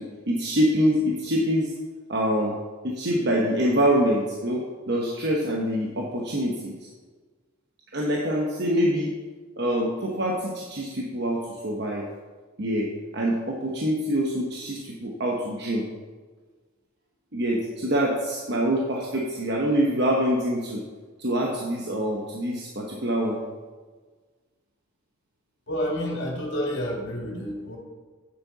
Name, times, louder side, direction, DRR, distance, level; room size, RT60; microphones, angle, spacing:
voice 1, 0.0-1.7 2.1-2.5 2.8-6.9 7.9-9.1 9.6-12.1 12.6-15.8 17.3-20.8 21.2-23.4, equal, 50° right, -2 dB, 1.0 m, -25 dB
voice 2, 25.7-27.8, equal, 55° left, -2 dB, 2.2 m, -29 dB
8.9 x 7.6 x 4.0 m, 1.4 s
head